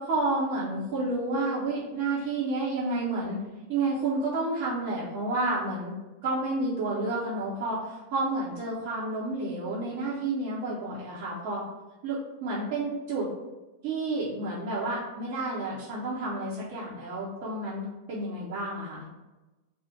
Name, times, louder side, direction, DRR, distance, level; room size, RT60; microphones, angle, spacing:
voice 1, 0.0-3.4 3.7-5.9 6.2-11.6 12.0-13.3 13.8-19.0, right 2 dB, 45° right, -10 dB, 1.2 m, -30 dB
4.1 x 2.7 x 4.7 m, 1.1 s
figure-of-eight pair, 90°, 0 cm